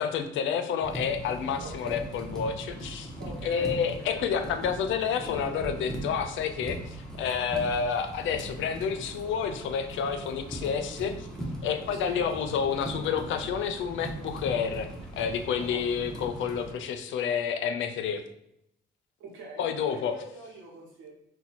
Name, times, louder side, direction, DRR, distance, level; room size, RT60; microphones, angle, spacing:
voice 1, 0.0-3.1 3.4-11.3 11.6-18.2 19.6-20.2, left 7 dB, 75° left, 8 dB, 0.4 m, -29 dB
sound 1, 0.8-16.7, right 1 dB, 5° left, 0.7 m, -40 dB
voice 2, 1.6-2.0 3.1-4.3 11.9-12.2 15.5-15.9 19.2-21.1, right 2 dB, 90° right, -2 dB, 1.0 m, -43 dB
2.8 x 2.1 x 4.0 m, 0.80 s
cardioid pair, 90°, 20 cm